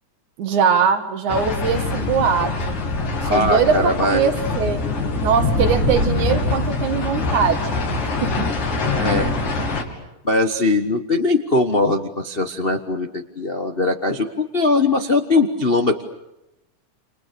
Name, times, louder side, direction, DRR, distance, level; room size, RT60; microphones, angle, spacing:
voice 1, 0.4-2.7 3.2-4.8 5.2-7.6 8.0-8.5, right 6 dB, 75° right, 7 dB, 3.3 m, -21 dB
sound 1, 1.3-9.8, left 3 dB, 70° left, 4.7 m, -24 dB
voice 2, 3.3-4.3 8.9-9.5 10.2-16.0, left 2 dB, 55° left, 5 dB, 0.6 m, -20 dB
sound 2, 5.6-6.2, right 5 dB, 60° right, 2.0 m, -24 dB
29.5 x 28.5 x 6.9 m, 0.90 s
omnidirectional pair, 3.4 m